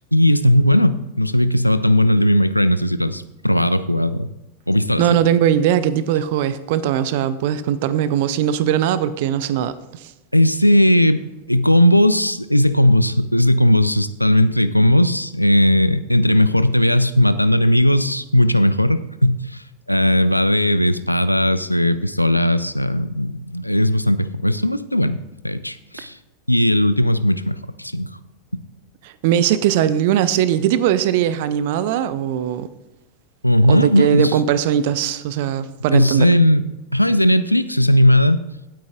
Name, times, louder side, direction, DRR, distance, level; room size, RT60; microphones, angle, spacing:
voice 1, 0.0-4.3 4.7-5.2 10.3-11.2 11.5-19.6 19.9-25.2 25.4-26.2 26.5-28.1 33.4-34.4 35.9-36.6 36.9-38.4, left 1 dB, 90° left, 13 dB, 0.5 m, -17 dB
voice 2, 5.0-10.1 29.0-32.7 33.7-36.3, right 10 dB, 50° right, 16 dB, 0.6 m, -20 dB
16.5 x 9.2 x 2.4 m, 0.97 s
figure-of-eight pair, 90°, 0 cm